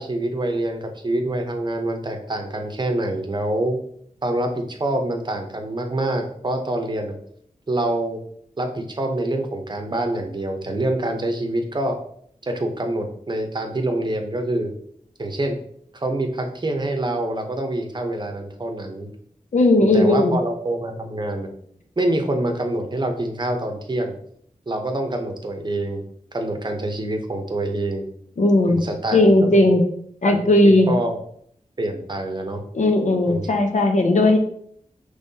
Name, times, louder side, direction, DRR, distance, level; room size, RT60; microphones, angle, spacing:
voice 1, 0.0-3.8 4.2-7.1 7.7-8.2 8.6-12.0 12.4-14.7 15.2-15.6 15.9-19.1 19.8-21.5 22.0-24.1 24.7-26.0 26.3-28.1 28.7-29.6 30.2-31.2 31.8-32.6 33.3-33.5, right 1 dB, 35° right, 3 dB, 0.8 m, -26 dB
voice 2, 19.5-20.4 28.4-28.8 29.1-29.8 30.2-30.9 32.7-34.4, left 1 dB, 65° left, 3 dB, 0.8 m, -16 dB
5.4 x 3.2 x 2.7 m, 0.65 s
wide cardioid pair, 90°, 13 cm